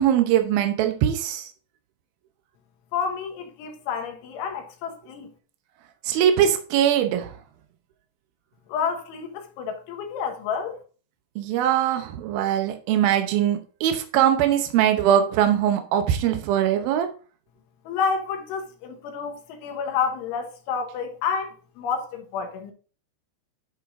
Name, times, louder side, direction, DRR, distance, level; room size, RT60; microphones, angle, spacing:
voice 1, 0.0-1.5 6.0-7.3 11.4-17.1, right 10 dB, 85° right, 2.1 m, -21 dB
voice 2, 2.9-5.3 8.7-10.8 17.9-22.7, left 6 dB, 80° left, 3.6 m, -29 dB
10.5 x 4.7 x 3.6 m
omnidirectional pair, 5.6 m